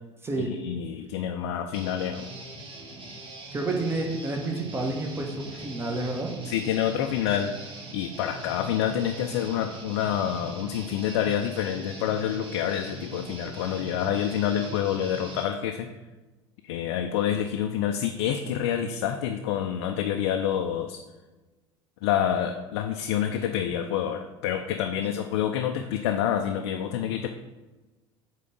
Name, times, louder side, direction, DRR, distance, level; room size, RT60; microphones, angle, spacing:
voice 1, 0.4-2.3 6.4-7.5 7.9-15.9 16.6-21.0 22.0-27.3, left 9 dB, 60° left, 5 dB, 0.6 m, -27 dB
Guitar, 1.7-15.4, right 2 dB, 35° right, 1.8 m, -42 dB
voice 2, 3.5-6.3 25.0-25.1, right 2 dB, 15° right, 1 dB, 1.5 m, -30 dB
8.4 x 3.8 x 6.9 m, 1.2 s
figure-of-eight pair, 70°, 15 cm